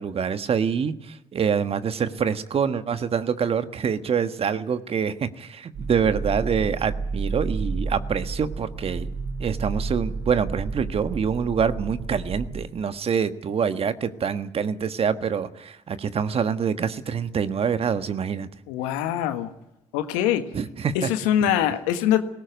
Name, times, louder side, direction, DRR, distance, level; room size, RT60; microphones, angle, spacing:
voice 1, 0.0-9.1 9.4-18.5 20.5-21.1, right 7 dB, 50° right, 11 dB, 1.5 m, -26 dB
sound 1, 5.7-12.6, right 4 dB, 65° right, 3.8 m, -31 dB
voice 2, 18.7-19.5 19.9-20.5 20.9-22.2, left 11 dB, 85° left, 9 dB, 1.5 m, -23 dB
19.0 x 17.0 x 9.4 m, 0.92 s
hypercardioid pair, 50°, 13 cm